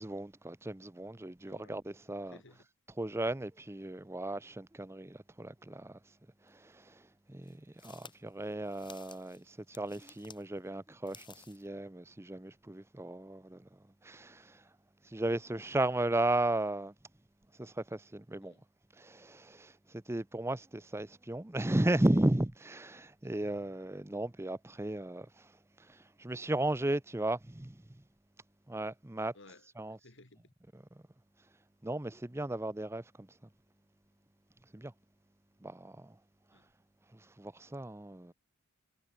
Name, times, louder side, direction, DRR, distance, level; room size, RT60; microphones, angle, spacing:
voice 1, 0.0-2.4 3.0-6.0 6.5-7.0 7.3-14.6 15.0-16.9 17.6-18.5 19.0-25.5 25.9-28.0 28.7-29.3 29.8-30.0 30.7-30.8 31.8-33.3 34.7-34.9 35.6-36.1 37.1-38.3, right 1 dB, 10° right, 0.6 m, -35 dB
voice 2, 1.4-1.8 2.3-2.7 7.4-7.7 15.6-15.7 18.4-18.6 23.4-23.8 29.3-30.5 36.5-36.7, left 2 dB, 60° left, 3.0 m, -59 dB
sound 1, 6.5-6.6 7.4-10.4 10.9-11.7, left 6 dB, 20° left, 4.6 m, -55 dB
head